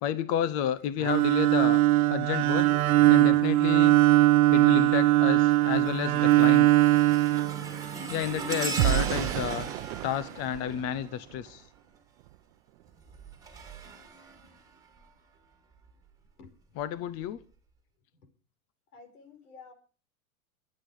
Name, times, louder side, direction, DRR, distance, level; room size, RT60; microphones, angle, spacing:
voice 1, 0.0-1.8 2.1-2.7 3.1-4.0 4.5-6.7 8.1-9.7 10.0-11.6 16.8-17.4, left 10 dB, 35° left, 0.8 m, -31 dB
Bowed string instrument, 1.0-8.2, right 16 dB, 75° right, 1.4 m, -21 dB
sound 1, 4.0-4.3 4.8-11.6 12.9-15.1 15.7-15.9 16.8-16.9, right 4 dB, 10° right, 2.5 m, -39 dB
sound 2, 5.8-5.9 6.2-11.7 12.2-12.4 12.8-13.0, right 16 dB, 50° right, 0.9 m, -33 dB
voice 2, 18.9-19.7, left 5 dB, 85° left, 5.4 m, -49 dB
23.0 x 8.7 x 4.9 m
supercardioid pair, 145°, 43 cm